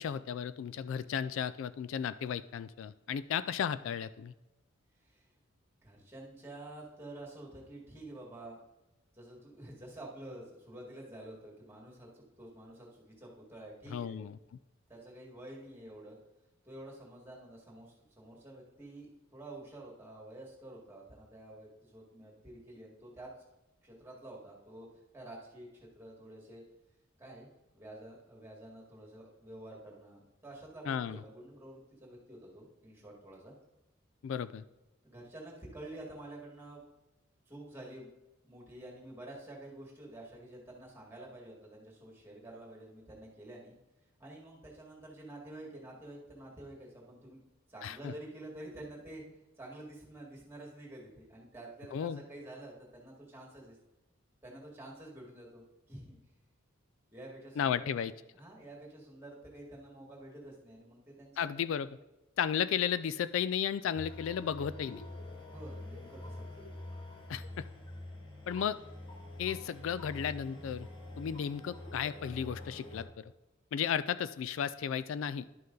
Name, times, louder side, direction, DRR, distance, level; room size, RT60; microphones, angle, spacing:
voice 1, 0.0-4.3 13.9-14.4 30.9-31.2 34.2-34.6 47.8-48.1 51.9-52.2 57.6-58.1 61.4-61.9 62.4-65.0 67.3-67.6 68.5-68.8 69.4-70.9 71.2-73.3 73.7-75.5, left 8 dB, 70° left, 15 dB, 0.3 m, -34 dB
voice 2, 5.8-8.6 9.1-14.2 14.9-16.2 16.6-23.3 23.8-24.9 25.1-26.6 27.2-27.5 27.7-33.5 35.0-36.8 37.5-38.1 38.4-43.8 44.2-47.4 47.7-53.8 54.4-56.2 57.1-57.8 58.3-61.5 65.5-66.4, right 1 dB, 10° right, -2 dB, 1.9 m, -49 dB
sound 1, 63.9-73.0, left 1 dB, 25° left, 1.3 m, -46 dB
11.5 x 5.4 x 3.9 m, 1.0 s
head